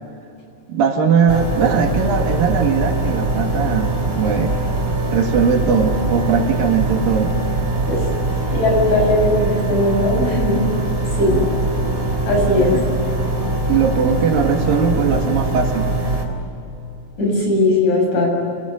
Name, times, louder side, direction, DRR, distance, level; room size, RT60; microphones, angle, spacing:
voice 1, 0.7-4.6 5.1-7.4 12.7-12.9 13.7-15.9, right 6 dB, 70° right, 4 dB, 3.4 m, -19 dB
sound 1, 1.3-16.3, right 2 dB, 15° right, 3.7 m, -22 dB
voice 2, 8.5-10.6 11.2-11.4 12.3-12.8 17.2-18.3, left 1 dB, 50° left, 0 dB, 8.8 m, -18 dB
27.5 x 19.0 x 9.4 m, 2.7 s
omnidirectional pair, 4.3 m